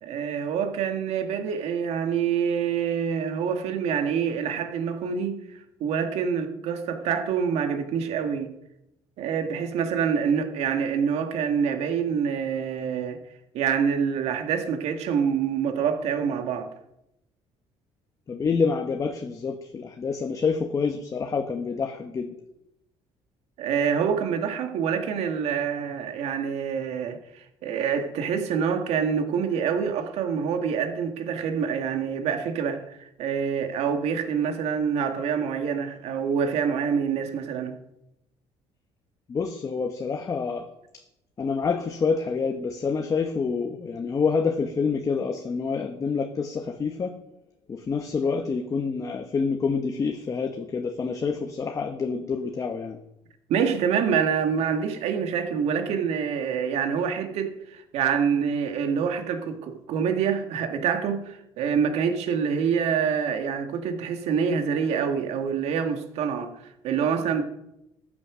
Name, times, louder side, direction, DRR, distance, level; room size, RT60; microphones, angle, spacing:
voice 1, 0.0-8.5 9.2-13.2 13.5-16.7 23.6-37.8 53.5-67.4, right 7 dB, 70° right, 1.9 m, -26 dB
voice 2, 18.3-22.3 39.3-40.7 41.4-47.1 47.7-53.0, left 5 dB, 30° left, 1.1 m, -27 dB
14.0 x 8.7 x 6.2 m
cardioid pair, 135°, 11 cm